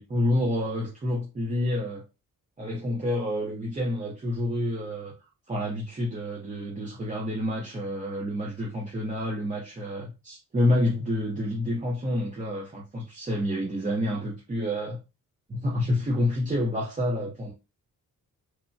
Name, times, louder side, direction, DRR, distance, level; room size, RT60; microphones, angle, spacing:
voice 1, 0.0-2.0 2.6-5.1 5.5-15.0 15.5-17.5, left 1 dB, 20° right, 0.6 m, -28 dB
3.0 x 2.1 x 2.6 m
wide cardioid pair, 150°, 33 cm